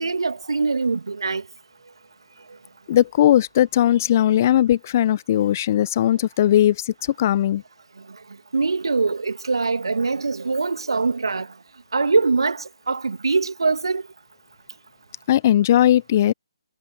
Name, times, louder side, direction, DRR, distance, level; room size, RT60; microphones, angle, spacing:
voice 1, 0.0-1.4 8.5-11.5 11.9-12.6 12.9-14.0, right 4 dB, 70° right, 2.3 m, -22 dB
voice 2, 2.9-6.8 7.2-7.6 15.3-16.3, left 12 dB, 35° left, 0.7 m, -18 dB
figure-of-eight pair, 145°, 3 cm